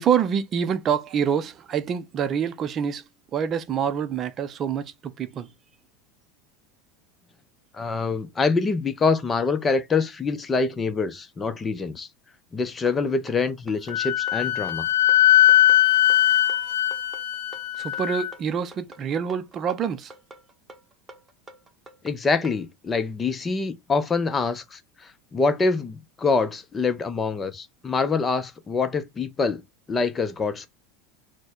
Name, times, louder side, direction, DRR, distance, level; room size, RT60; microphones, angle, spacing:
voice 1, 0.0-3.0 3.3-5.5 17.8-20.1, right 8 dB, 40° right, 0.5 m, -26 dB
voice 2, 7.8-12.1 12.5-14.9 22.0-24.8 25.3-29.6 29.9-30.7, left 4 dB, 25° left, 0.7 m, -25 dB
sound 1, 12.9-22.6, right 2 dB, 20° right, 1.0 m, -47 dB
Wind instrument woodwind instrument, 13.9-18.3, left 13 dB, 70° left, 0.5 m, -20 dB
4.2 x 2.2 x 4.4 m
hypercardioid pair, 85°, 0 cm